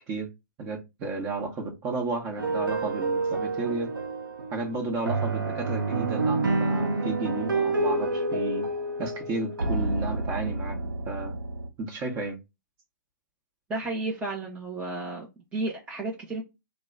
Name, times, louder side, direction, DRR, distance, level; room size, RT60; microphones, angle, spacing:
voice 1, 0.6-3.9 4.5-8.7 9.0-11.4 11.8-12.4, right 3 dB, 25° right, 1.0 m, -33 dB
sound 1, 2.4-11.7, right 2 dB, 90° right, 0.7 m, -28 dB
voice 2, 13.7-16.4, right 2 dB, 10° right, 0.7 m, -32 dB
3.0 x 2.1 x 3.7 m
figure-of-eight pair, 125°, 11 cm